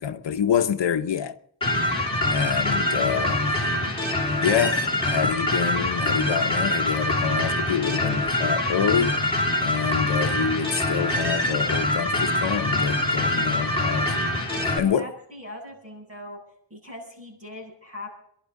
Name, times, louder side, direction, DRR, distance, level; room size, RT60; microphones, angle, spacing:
voice 1, 0.0-1.4 2.3-3.7 4.4-9.2 9.6-14.1 14.8-15.1, left 8 dB, 80° left, 0.9 m, -26 dB
sound 1, 1.6-14.8, left 1 dB, 10° left, 3.3 m, -24 dB
voice 2, 14.5-16.4 16.7-18.1, left 1 dB, 30° right, 7.9 m, -40 dB
29.0 x 11.5 x 3.8 m
wide cardioid pair, 130°, 43 cm